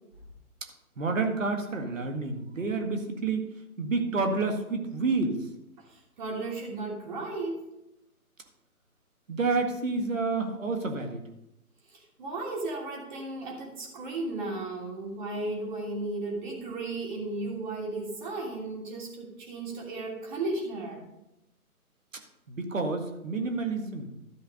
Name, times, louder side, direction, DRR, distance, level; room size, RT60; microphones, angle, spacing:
voice 1, 1.0-3.5 3.8-5.4 9.3-11.2 22.5-24.1, right 3 dB, 60° right, 4 dB, 1.9 m, -29 dB
voice 2, 5.9-7.6 11.9-21.0, right 2 dB, 30° right, -2 dB, 3.1 m, -35 dB
13.0 x 5.6 x 5.1 m, 0.90 s
figure-of-eight pair, 145°, 45 cm